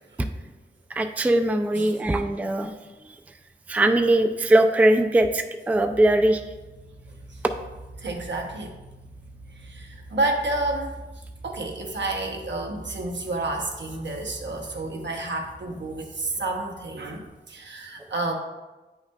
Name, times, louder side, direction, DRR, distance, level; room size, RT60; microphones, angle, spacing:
voice 1, 0.9-2.7 3.7-6.4, right 1 dB, 10° right, 6 dB, 0.3 m, -20 dB
sound 1, 5.7-17.4, right 1 dB, 45° right, 0.7 m, -45 dB
voice 2, 8.0-8.7 9.6-11.0 11.4-18.3, right 2 dB, 75° right, 1 dB, 0.9 m, -30 dB
8.9 x 5.6 x 2.3 m, 1.1 s
wide cardioid pair, 100°, 19 cm